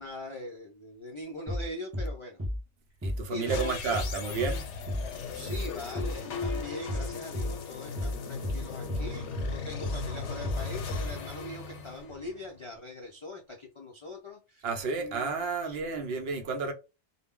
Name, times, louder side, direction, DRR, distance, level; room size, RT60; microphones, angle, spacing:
voice 1, 0.0-2.4 3.3-4.1 5.3-15.3 15.6-16.2, left 1 dB, 55° left, 0.3 m, -42 dB
sound 1, 1.5-1.7 1.9-2.1 2.4-2.6 3.0-3.2 3.5-3.7 3.9-4.1 4.4-4.6 4.9-5.1 5.5-5.7 6.0-6.2 6.4-6.6 6.9-7.1 7.3-7.5 8.0-8.2 8.4-8.6 8.9-9.1 9.4-9.6 9.8-10.0 10.4-10.6 10.9-11.1, left 1 dB, 20° right, 0.4 m, -32 dB
voice 2, 3.0-4.7 14.6-16.7, right 4 dB, 65° right, 0.8 m, -31 dB
sound 2, 3.4-12.6, left 5 dB, 85° left, 0.9 m, -38 dB
2.2 x 2.0 x 3.5 m
omnidirectional pair, 1.2 m